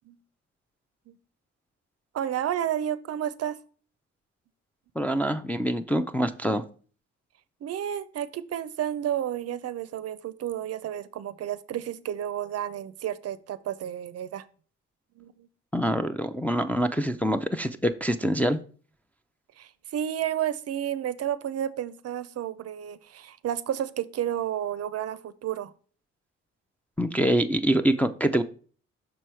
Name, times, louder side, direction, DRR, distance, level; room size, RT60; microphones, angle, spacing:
voice 1, 2.1-3.6 7.6-14.4 15.2-15.5 19.6-25.7, right 10 dB, 55° right, 15 dB, 0.5 m, -31 dB
voice 2, 5.0-6.6 15.7-18.6 27.0-28.4, equal, 5° left, 5 dB, 0.4 m, -25 dB
6.2 x 4.7 x 4.4 m, 0.42 s
cardioid pair, 90°, 30 cm